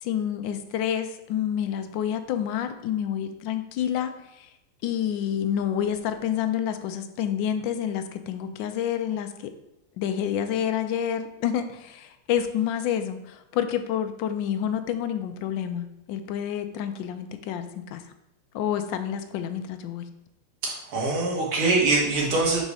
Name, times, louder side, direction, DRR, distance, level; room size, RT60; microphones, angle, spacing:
voice 1, 0.0-4.5 4.8-9.5 10.0-18.0 18.5-20.0, left 9 dB, 75° left, 8 dB, 1.1 m, -28 dB
voice 2, 20.6-22.6, right 3 dB, 75° right, -2 dB, 2.3 m, -23 dB
4.8 x 4.0 x 5.4 m, 0.87 s
omnidirectional pair, 2.4 m